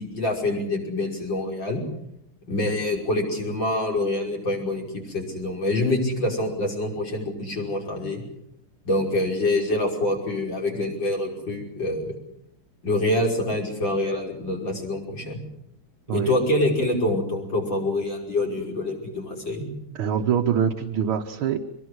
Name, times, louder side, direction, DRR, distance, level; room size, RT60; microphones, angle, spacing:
voice 1, 0.0-1.8 2.5-8.2 8.8-12.1 12.8-15.4 16.1-19.7, left 1 dB, 65° left, 0 dB, 6.4 m, -26 dB
voice 2, 20.0-21.6, right 8 dB, 90° right, 2 dB, 2.1 m, -24 dB
24.0 x 22.0 x 8.1 m, 0.77 s
omnidirectional pair, 2.2 m